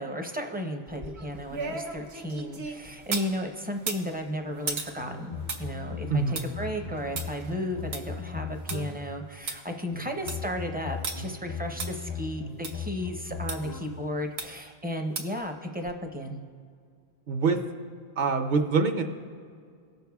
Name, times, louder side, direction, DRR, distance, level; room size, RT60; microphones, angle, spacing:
voice 1, 0.0-16.4, equal, 10° right, 3 dB, 0.5 m, -34 dB
sound 1, 0.9-3.3 3.7-8.8 9.1-9.2 9.5-9.6 10.0-10.5 11.0-11.1 11.8-11.9 12.6-12.7 13.5-13.6 14.4-14.7 15.1-15.4 15.8-15.9, right 4 dB, 85° right, 1.1 m, -36 dB
sound 2, 5.0-9.2 9.9-14.2, left 5 dB, 80° left, 1.0 m, -38 dB
voice 2, 17.3-17.6 18.2-19.0, right 4 dB, 55° right, 4 dB, 0.7 m, -24 dB
18.0 x 6.5 x 2.3 m, 2.1 s
omnidirectional pair, 1.0 m